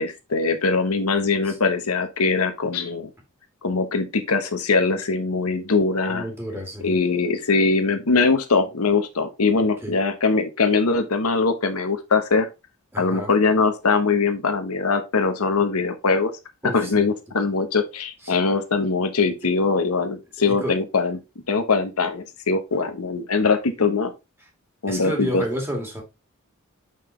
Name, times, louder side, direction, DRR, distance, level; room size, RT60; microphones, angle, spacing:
voice 1, 0.0-3.1 3.6-6.2 6.8-12.5 13.0-16.3 16.6-21.2 21.5-24.1 24.8-25.4, left 4 dB, 85° left, 1.1 m, -22 dB
voice 2, 6.1-7.0 9.8-9.9 12.9-13.3 16.6-17.1 18.2-18.4 20.4-20.7 23.4-23.5 24.9-26.0, equal, 10° right, 2.1 m, -31 dB
5.8 x 5.5 x 3.2 m
head